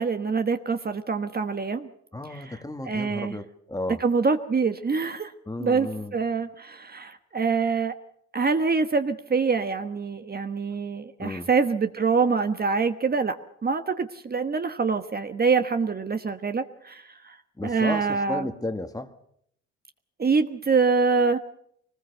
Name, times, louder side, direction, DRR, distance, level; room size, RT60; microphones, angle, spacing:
voice 1, 0.0-1.9 2.3-2.6 2.9-3.4 4.0-5.3 5.6-7.9 8.3-13.4 13.6-17.3 17.6-18.5 20.2-21.4, right 5 dB, 30° right, 8 dB, 1.2 m, -25 dB
voice 2, 2.1-4.0 5.5-6.2 11.2-11.5 17.6-19.1, left 1 dB, 10° left, 8 dB, 1.7 m, -33 dB
23.0 x 19.5 x 6.7 m, 0.70 s
cardioid pair, 90°, 30 cm